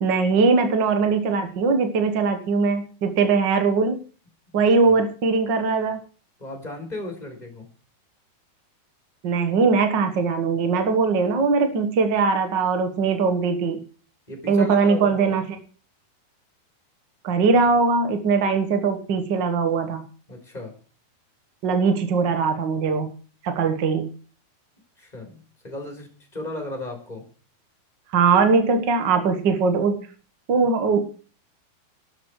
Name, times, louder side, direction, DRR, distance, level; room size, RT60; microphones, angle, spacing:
voice 1, 0.0-4.0 4.5-6.0 9.2-13.8 14.5-15.4 17.2-20.0 21.6-23.1 23.4-24.1 28.1-30.0 30.5-31.0, right 4 dB, 80° right, 7 dB, 1.0 m, -21 dB
voice 2, 4.5-4.9 6.4-7.7 14.3-15.3 20.3-20.7 25.0-27.2, left 1 dB, 10° left, 2 dB, 3.6 m, -35 dB
14.0 x 13.0 x 4.8 m, 0.40 s
omnidirectional pair, 4.6 m